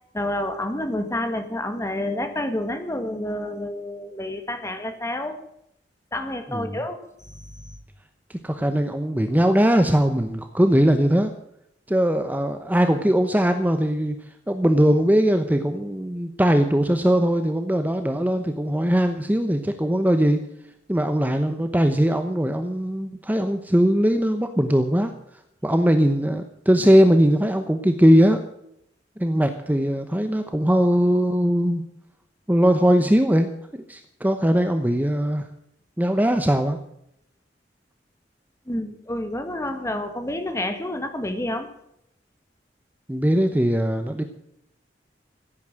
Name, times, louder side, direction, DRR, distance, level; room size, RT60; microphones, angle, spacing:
voice 1, 0.1-5.4 6.1-7.8 38.7-41.7, left 1 dB, 15° left, 8 dB, 1.8 m, -29 dB
voice 2, 8.3-11.3 11.9-14.2 14.5-20.4 20.9-25.1 25.6-28.4 29.2-31.8 32.5-35.5 36.0-36.8 43.1-44.2, equal, 10° right, 7 dB, 0.9 m, -20 dB
15.5 x 9.3 x 7.6 m, 0.77 s
head